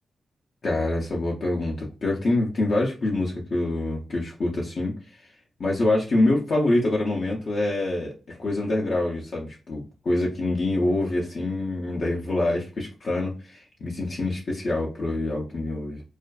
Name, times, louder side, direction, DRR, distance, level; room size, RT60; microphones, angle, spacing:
voice 1, 0.6-5.3 5.6-16.0, left 2 dB, 60° left, -3 dB, 0.5 m, -26 dB
2.4 x 2.2 x 2.3 m, 0.33 s
cardioid pair, 90°, 0 cm